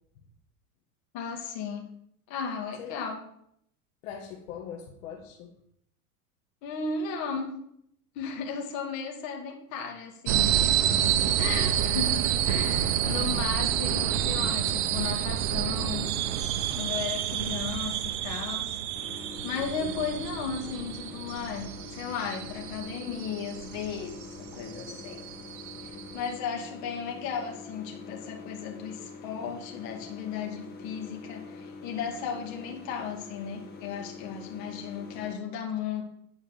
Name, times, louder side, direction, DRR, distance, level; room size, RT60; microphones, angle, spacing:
voice 1, 1.1-1.9 2.3-3.2 6.6-7.6 8.2-11.0 11.4-16.1 16.8-18.8 19.1-25.2 25.8-36.0, left 6 dB, 40° left, 1 dB, 2.1 m, -35 dB
voice 2, 4.0-5.5 19.6-20.0 25.7-26.0, left 8 dB, 60° left, 1 dB, 1.6 m, -42 dB
sound 1, 10.3-26.3, right 10 dB, 50° right, 0.8 m, -29 dB
sound 2, 18.9-35.4, left 4 dB, 20° left, 1.2 m, -45 dB
9.5 x 4.8 x 7.1 m, 0.72 s
supercardioid pair, 155°, 44 cm